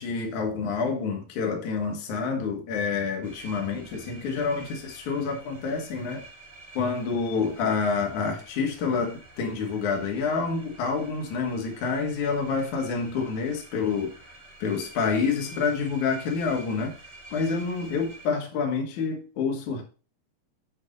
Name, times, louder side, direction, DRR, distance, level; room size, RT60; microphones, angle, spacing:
voice 1, 0.0-6.2 6.8-14.1 14.6-16.9 17.3-19.8, left 5 dB, 60° left, 2.7 m, -28 dB
sound 1, 3.2-18.3, right 2 dB, 55° right, 0.4 m, -48 dB
8.7 x 4.7 x 5.1 m
omnidirectional pair, 4.3 m